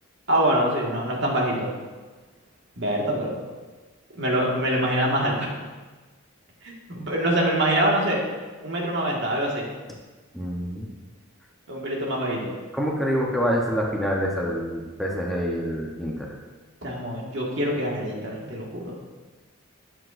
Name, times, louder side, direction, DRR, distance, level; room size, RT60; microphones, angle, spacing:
voice 1, 0.3-1.7 2.8-3.3 4.1-5.5 6.6-8.2 8.6-9.6 11.7-12.5 16.8-18.9, right 1 dB, 60° right, -2 dB, 1.9 m, -25 dB
voice 2, 10.3-10.9 12.7-16.3, equal, ahead, -3 dB, 0.9 m, -26 dB
12.5 x 8.1 x 2.6 m, 1.3 s
head